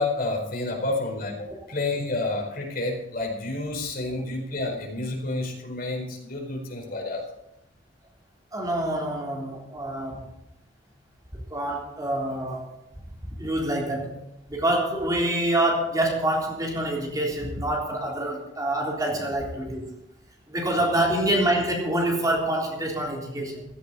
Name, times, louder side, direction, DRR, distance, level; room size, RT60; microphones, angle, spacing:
voice 1, 0.0-7.2 19.1-19.2, left 2 dB, 55° left, 2 dB, 4.5 m, -29 dB
voice 2, 8.5-10.2 11.3-12.7 13.4-14.2 14.5-19.9 20.5-23.7, right 1 dB, 20° right, -1 dB, 3.6 m, -26 dB
16.0 x 14.0 x 4.2 m, 0.86 s
head